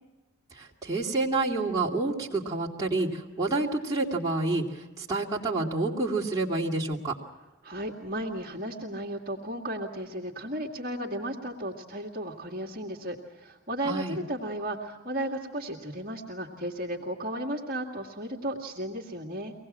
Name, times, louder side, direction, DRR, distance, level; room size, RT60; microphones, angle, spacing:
voice 1, 0.5-7.1 13.8-14.2, right 2 dB, 15° right, -4 dB, 2.6 m, -28 dB
voice 2, 7.6-19.5, right 1 dB, 40° right, 0 dB, 2.2 m, -34 dB
24.5 x 18.5 x 7.4 m, 1.2 s
head